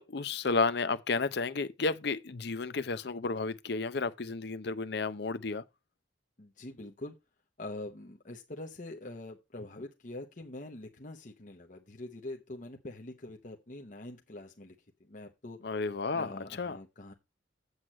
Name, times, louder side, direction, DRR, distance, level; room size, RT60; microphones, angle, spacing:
voice 1, 0.0-5.6 15.6-16.8, left 4 dB, 65° left, 0.7 m, -32 dB
voice 2, 6.4-7.2 7.6-14.7 15.1-15.6 16.1-17.1, left 2 dB, 45° left, 1.0 m, -44 dB
8.0 x 7.9 x 4.2 m
head